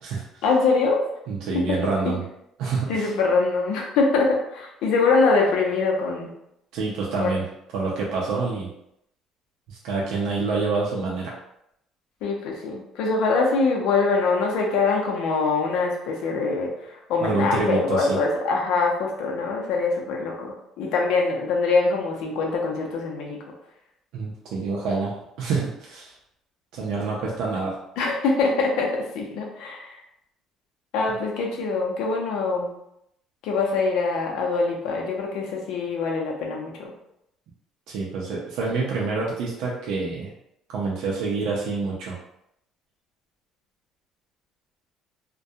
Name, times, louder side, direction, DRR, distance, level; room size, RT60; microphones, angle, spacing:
voice 1, 0.4-1.1 2.0-2.1 2.9-6.3 7.1-7.3 12.2-23.4 28.0-30.0 30.9-32.7 33.4-36.9, left 4 dB, 80° left, 0 dB, 0.6 m, -23 dB
voice 2, 1.3-2.2 2.6-3.1 6.7-7.4 7.7-8.7 9.7-11.3 17.2-18.2 24.1-26.1 26.7-27.8 37.9-40.3 40.7-42.2, right 4 dB, 80° right, -4 dB, 0.5 m, -27 dB
2.3 x 2.2 x 2.7 m, 0.79 s
cardioid pair, 120°, 0 cm